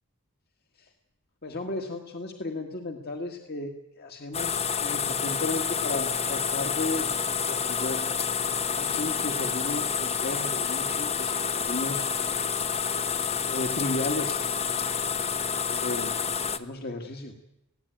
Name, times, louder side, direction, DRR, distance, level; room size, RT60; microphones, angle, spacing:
voice 1, 1.4-3.7 4.0-7.1 7.4-8.1 8.8-12.1 13.5-14.4 15.7-16.1 16.5-17.3, left 2 dB, 45° left, 3 dB, 1.8 m, -34 dB
sound 1, 4.3-16.6, left 6 dB, 30° left, 0.8 m, -28 dB
20.0 x 16.5 x 9.1 m, 0.86 s
head